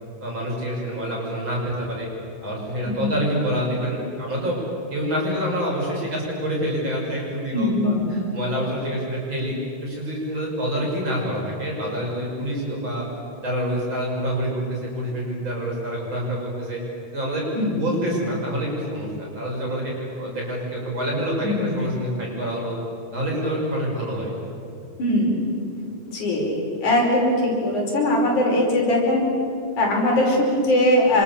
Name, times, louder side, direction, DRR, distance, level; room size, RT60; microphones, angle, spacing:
voice 1, 0.2-2.1 2.4-4.6 4.9-9.5 9.8-13.0 13.4-16.8 17.1-19.9 20.2-22.8 23.1-24.3, equal, 40° right, -3 dB, 7.6 m, -27 dB
voice 2, 7.5-8.1 17.5-17.9 21.4-21.7 25.0-25.5 26.1-29.3 29.8-31.2, left 1 dB, 90° left, -1 dB, 6.8 m, -21 dB
29.0 x 25.5 x 7.3 m, 2.6 s
omnidirectional pair, 3.4 m